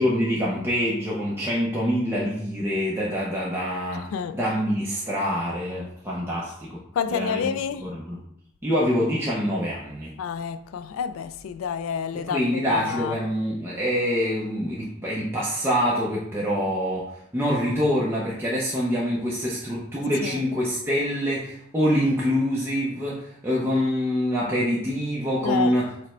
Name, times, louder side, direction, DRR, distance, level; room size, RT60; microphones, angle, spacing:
voice 1, 0.0-4.1 4.3-6.8 7.1-7.4 7.8-8.2 8.6-10.1 12.1-17.1 17.3-26.1, equal, 10° right, 0.6 m, -25 dB
voice 2, 7.0-7.9 10.2-13.2 20.2-20.4 25.4-25.7, left 7 dB, 75° left, 0.3 m, -29 dB
4.9 x 2.1 x 4.3 m
head